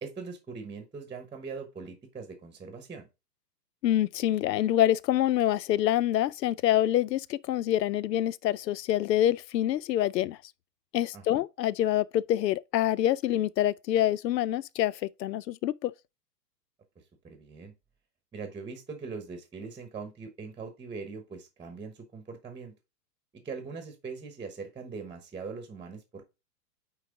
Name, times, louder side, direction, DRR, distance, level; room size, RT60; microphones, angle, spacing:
voice 1, 0.0-3.1 11.1-11.4 17.2-17.7 18.3-22.7 23.3-26.2, right 5 dB, 10° right, 1.0 m, -41 dB
voice 2, 3.8-10.4 10.9-15.9, left 12 dB, 90° left, 0.6 m, -26 dB
9.1 x 3.2 x 3.6 m
hypercardioid pair, 130°, 48 cm